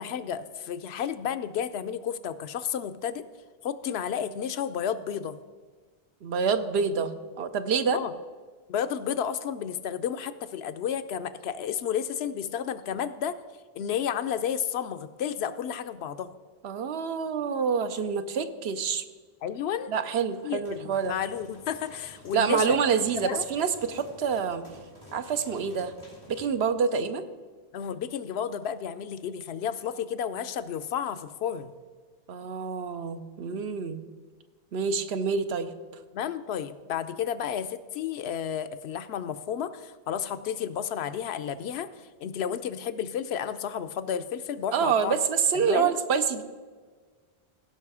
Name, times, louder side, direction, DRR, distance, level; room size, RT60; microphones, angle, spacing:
voice 1, 0.0-3.2 3.6-5.4 7.9-8.1 8.7-13.4 13.7-16.3 19.4-19.9 20.4-22.8 23.2-23.5 27.7-31.7 36.1-45.2 45.5-45.9, left 8 dB, 90° left, 12 dB, 0.8 m, -32 dB
voice 2, 6.2-7.1 7.4-8.0 16.6-19.0 19.9-21.2 22.3-24.6 25.1-25.9 26.3-27.2 32.3-34.0 34.7-35.7 44.7-46.4, right 6 dB, 80° right, 10 dB, 1.0 m, -27 dB
sound 1, 20.3-26.5, left 1 dB, 30° left, 3.2 m, -51 dB
16.0 x 5.5 x 4.8 m, 1.5 s
omnidirectional pair, 1.0 m